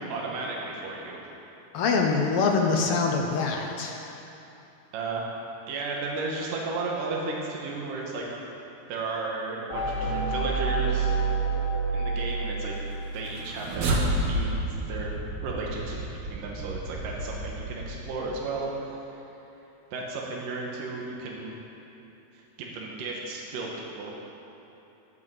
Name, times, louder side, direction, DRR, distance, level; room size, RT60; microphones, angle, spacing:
voice 1, 0.1-1.2 2.0-2.1 4.9-5.3 5.7-8.2 8.9-11.2 11.9-12.7 13.1-15.1 15.4-19.1 19.9-21.5 22.3-24.1, right 3 dB, 75° right, -2 dB, 3.0 m, -34 dB
voice 2, 1.7-4.0, left 4 dB, 80° left, 1 dB, 1.3 m, -24 dB
sound 1, 9.7-13.4, right 4 dB, 25° left, 3.2 m, -28 dB
sound 2, 13.2-18.5, right 1 dB, 60° right, 2.2 m, -31 dB
13.0 x 9.8 x 7.5 m, 3.0 s
omnidirectional pair, 3.9 m